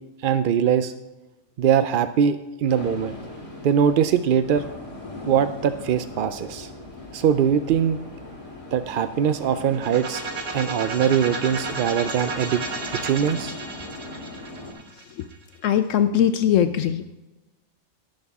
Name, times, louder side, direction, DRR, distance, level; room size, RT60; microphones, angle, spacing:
voice 1, 0.2-0.9 1.6-3.2 3.6-4.7 5.3-6.7 7.1-8.0 8.7-10.2 10.5-12.6 12.9-13.5, right 8 dB, 65° right, 11 dB, 0.5 m, -22 dB
sound 1, 2.7-14.7, left 2 dB, 25° left, 2.2 m, -39 dB
sound 2, 9.7-15.5, right 4 dB, 50° right, 1.6 m, -33 dB
voice 2, 15.6-17.0, left 9 dB, 75° left, 10 dB, 0.9 m, -20 dB
18.0 x 6.5 x 3.5 m, 1.1 s
omnidirectional pair, 1.4 m